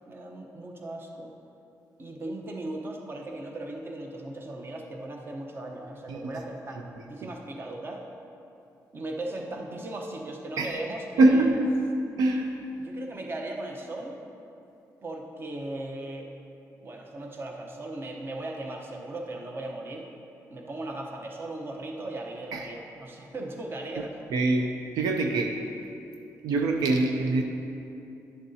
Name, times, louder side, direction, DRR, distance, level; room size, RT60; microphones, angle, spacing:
voice 1, 0.1-1.3 2.0-8.0 8.9-11.6 12.8-14.2 15.0-16.3 16.8-20.1 20.5-24.1, right 2 dB, 35° right, 1 dB, 0.9 m, -37 dB
voice 2, 11.2-11.8 12.2-12.6 22.5-22.7 24.3-24.7 25.0-25.6 26.4-27.4, right 2 dB, 85° right, 3 dB, 0.6 m, -23 dB
10.5 x 7.0 x 2.8 m, 2.7 s
cardioid pair, 100°, 6 cm